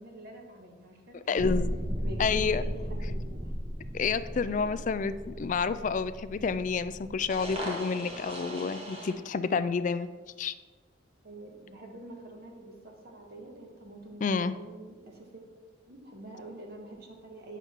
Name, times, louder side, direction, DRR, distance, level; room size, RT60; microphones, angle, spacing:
voice 1, 0.0-1.5 2.0-3.5 4.4-4.7 11.2-15.4 15.7-17.6, right 1 dB, 55° right, 1 dB, 1.5 m, -46 dB
voice 2, 1.3-1.7 2.2-2.6 3.9-10.1 10.4-10.5 14.2-14.5, left 5 dB, 40° left, 13 dB, 0.3 m, -29 dB
sound 1, 1.4-9.1, equal, 35° right, 1.5 m, -36 dB
8.0 x 6.0 x 4.5 m, 1.3 s
head